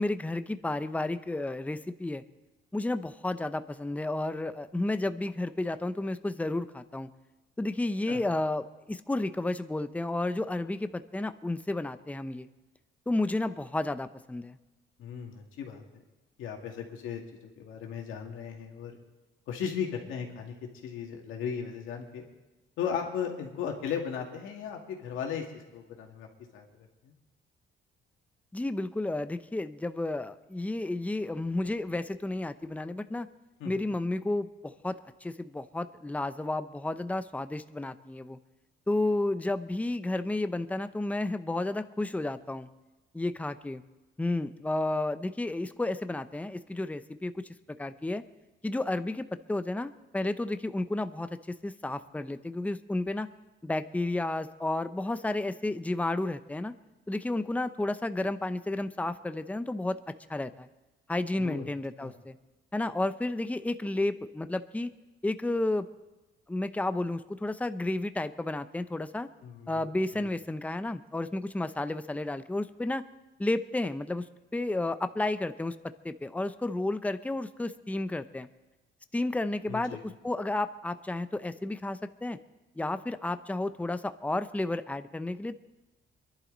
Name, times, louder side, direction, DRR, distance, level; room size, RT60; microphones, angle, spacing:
voice 1, 0.0-2.2 2.7-7.1 7.6-12.5 13.1-14.6 28.5-33.3 33.6-35.0 35.2-38.4 38.9-42.7 43.1-43.8 44.2-47.5 47.8-48.2 48.6-53.3 53.6-56.7 57.1-60.7 61.1-62.4 62.7-64.9 65.2-65.9 66.5-69.3 69.7-73.0 73.4-78.5 79.1-80.0 80.2-82.4 82.8-85.5, left 2 dB, 5° left, 11 dB, 0.7 m, -32 dB
voice 2, 15.0-16.0 16.4-19.0 19.5-20.6 20.8-22.2 22.8-26.3 26.5-27.1 33.6-33.8 61.4-61.7 62.0-62.1 69.4-69.9 70.2-70.3 79.6-80.1, left 7 dB, 85° left, 1 dB, 2.3 m, -36 dB
23.5 x 11.5 x 4.0 m, 1.1 s
cardioid pair, 90°, 20 cm